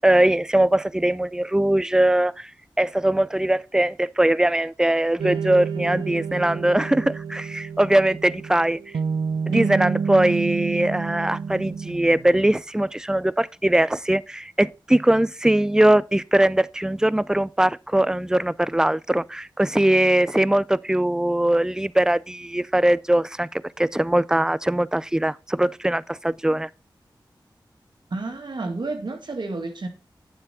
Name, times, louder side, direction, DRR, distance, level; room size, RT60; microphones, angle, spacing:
voice 1, 0.0-2.5 2.8-8.8 9.5-26.7, right 1 dB, 10° right, 0.4 m, -21 dB
sound 1, 5.2-12.6, right 5 dB, 90° right, 0.5 m, -29 dB
voice 2, 28.1-29.9, right 3 dB, 65° right, 1.9 m, -30 dB
9.1 x 7.2 x 4.2 m
cardioid pair, 40°, 8 cm